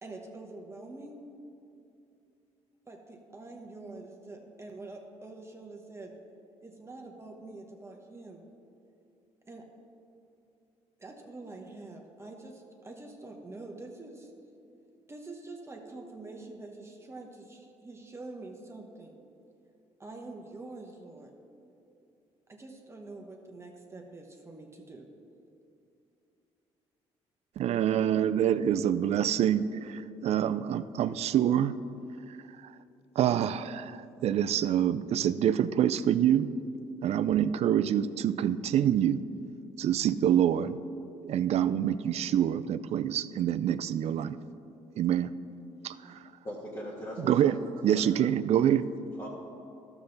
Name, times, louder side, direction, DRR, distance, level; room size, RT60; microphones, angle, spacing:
voice 1, 0.0-1.3 2.9-6.1 6.6-8.4 9.5-9.7 11.0-14.3 15.1-19.1 20.0-21.3 22.5-25.1, right 2 dB, 20° right, 2 dB, 1.0 m, -45 dB
voice 2, 27.6-31.8 33.2-36.6 37.0-39.3 39.8-40.8 41.2-44.4 45.0-45.3 45.8-46.2 47.2-47.6 47.8-48.9, right 10 dB, 60° right, 14 dB, 0.4 m, -26 dB
voice 3, 46.4-47.6 47.8-48.0 49.2-49.3, equal, 25° left, -6 dB, 1.6 m, -39 dB
12.0 x 7.1 x 3.9 m, 2.7 s
supercardioid pair, 80°, 12 cm